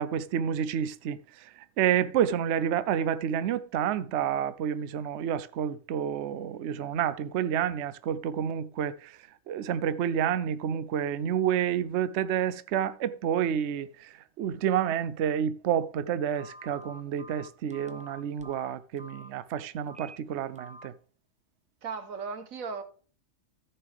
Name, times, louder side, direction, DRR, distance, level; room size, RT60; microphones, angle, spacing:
voice 1, 0.0-9.2 9.5-20.9, right 9 dB, 65° right, 0.8 m, -29 dB
Telephone, 16.4-19.3 19.8-20.2 20.6-20.9, equal, 5° right, 0.7 m, -48 dB
voice 2, 21.8-22.8, right 5 dB, 90° right, 1.6 m, -36 dB
14.0 x 5.5 x 3.5 m
omnidirectional pair, 1.4 m